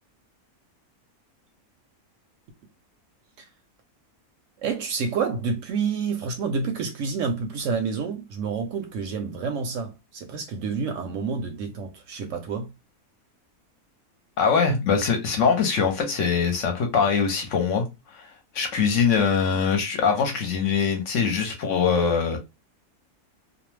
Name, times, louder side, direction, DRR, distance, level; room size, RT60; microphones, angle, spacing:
voice 1, 4.6-12.7, right 5 dB, 70° right, 0.8 m, -29 dB
voice 2, 14.4-17.9 18.1-22.4, left 6 dB, 65° left, 0.9 m, -23 dB
2.5 x 2.1 x 3.1 m
omnidirectional pair, 1.6 m